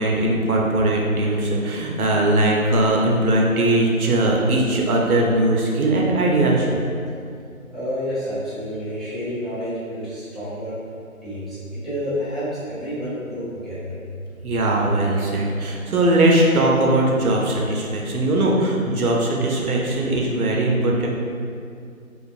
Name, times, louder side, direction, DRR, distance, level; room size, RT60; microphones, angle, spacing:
voice 1, 0.0-6.7 14.4-21.1, right 1 dB, 90° right, -1 dB, 0.6 m, -20 dB
voice 2, 7.7-10.7 11.2-14.0, equal, ahead, -14 dB, 0.5 m, -29 dB
2.4 x 2.2 x 2.4 m, 2.4 s
figure-of-eight pair, 175°, 43 cm